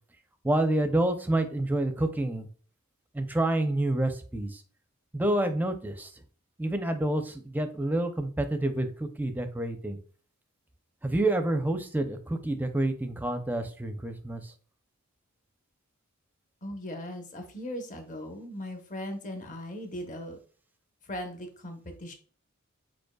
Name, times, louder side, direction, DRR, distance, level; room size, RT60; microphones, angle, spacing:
voice 1, 0.4-2.5 3.1-4.6 5.1-6.1 6.6-10.0 11.0-14.5, right 1 dB, 10° right, 7 dB, 0.5 m, -28 dB
voice 2, 16.6-20.4 21.0-22.1, left 1 dB, 40° left, 5 dB, 0.9 m, -38 dB
5.2 x 4.4 x 2.3 m, 0.41 s
head